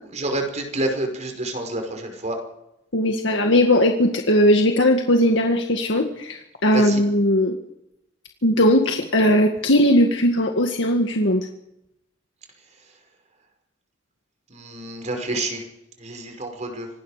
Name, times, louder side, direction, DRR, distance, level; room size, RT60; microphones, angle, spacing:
voice 1, 0.1-2.4 6.7-7.0 14.5-15.6 16.0-16.9, right 2 dB, 40° right, 4 dB, 5.4 m, -28 dB
voice 2, 2.9-7.5 8.4-11.5, left 1 dB, 80° left, 3 dB, 2.0 m, -18 dB
26.0 x 19.5 x 5.1 m, 0.83 s
head